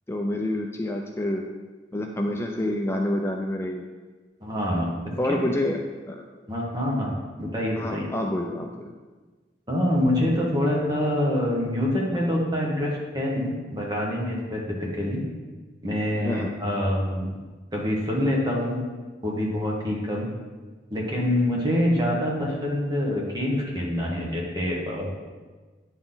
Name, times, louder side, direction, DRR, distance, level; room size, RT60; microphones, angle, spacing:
voice 1, 0.1-1.4 1.9-3.8 5.2-5.8 6.1-6.2 7.8-8.9 16.2-16.5, left 1 dB, 15° left, 2 dB, 0.4 m, -27 dB
voice 2, 4.4-4.9 5.4-5.5 6.5-8.0 9.7-15.2 15.8-17.4 17.7-18.8 19.2-20.3 20.9-25.1, left 1 dB, 20° right, -2 dB, 1.3 m, -26 dB
9.6 x 4.0 x 3.9 m, 1.3 s
head